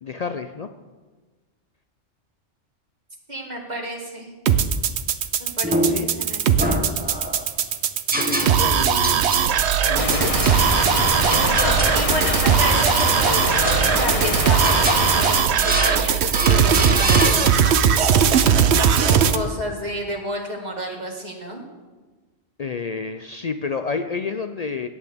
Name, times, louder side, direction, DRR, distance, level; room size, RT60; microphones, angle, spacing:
voice 1, 0.0-0.7 5.9-6.1 8.1-9.3 9.8-10.3 22.6-24.9, left 5 dB, 65° left, 8 dB, 0.4 m, -30 dB
voice 2, 3.3-4.4 5.4-6.7 11.4-17.9 19.0-21.6, equal, 35° right, -1 dB, 2.0 m, -31 dB
sound 1, 4.5-19.4, right 8 dB, 70° right, 0.9 m, -19 dB
sound 2, 5.6-6.2 6.6-7.5 8.1-8.8 9.0-9.5 10.1-10.6 11.3-12.0 12.4-13.2 13.6-14.2 14.6-15.1 15.6-16.0 16.3-17.8, equal, 10° right, 1.0 m, -26 dB
April Rain At Night, 10.0-15.4, left 3 dB, 30° left, 0.9 m, -25 dB
18.0 x 8.8 x 3.5 m, 1.3 s
omnidirectional pair, 1.2 m